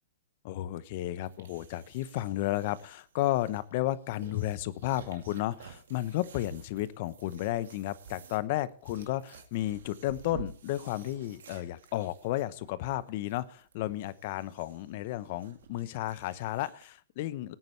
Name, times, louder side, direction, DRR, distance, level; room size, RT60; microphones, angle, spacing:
voice 1, 0.4-17.6, left 15 dB, 50° left, 17 dB, 0.8 m, -33 dB
sound 1, 1.2-17.0, right 6 dB, 75° right, 2.1 m, -52 dB
18.5 x 9.1 x 3.3 m, 0.43 s
hypercardioid pair, 135°, 0 cm